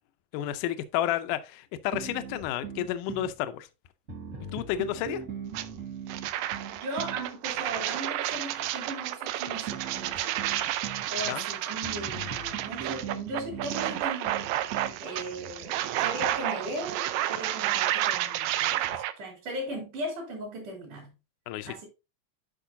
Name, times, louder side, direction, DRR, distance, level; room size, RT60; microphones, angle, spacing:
voice 1, 0.3-3.7 4.5-5.2 11.3-11.4 21.5-21.8, left 12 dB, 75° left, 2.1 m, -31 dB
sound 1, 1.9-3.3 4.1-7.3 9.7-11.1 11.8-15.0, right 6 dB, 45° right, 1.0 m, -39 dB
sound 2, 5.5-5.7 6.1-19.1, right 13 dB, 80° right, 2.3 m, -31 dB
voice 2, 6.7-10.2 11.1-14.5 15.0-15.7 16.0-18.8 19.2-21.1 21.7-21.9, right 1 dB, 65° right, 3.9 m, -37 dB
10.0 x 5.3 x 2.7 m
omnidirectional pair, 4.0 m